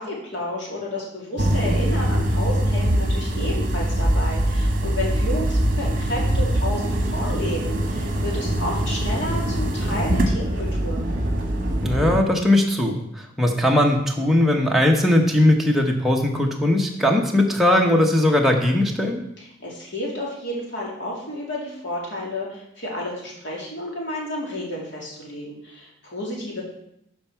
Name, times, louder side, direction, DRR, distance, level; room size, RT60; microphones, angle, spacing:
voice 1, 0.0-11.0 19.4-26.6, left 1 dB, 55° left, -3 dB, 2.4 m, -31 dB
sound 1, 1.4-12.2, right 1 dB, 40° right, 1.2 m, -23 dB
voice 2, 11.8-19.2, left 1 dB, ahead, 0 dB, 0.8 m, -19 dB
12.0 x 4.6 x 4.5 m, 0.78 s
head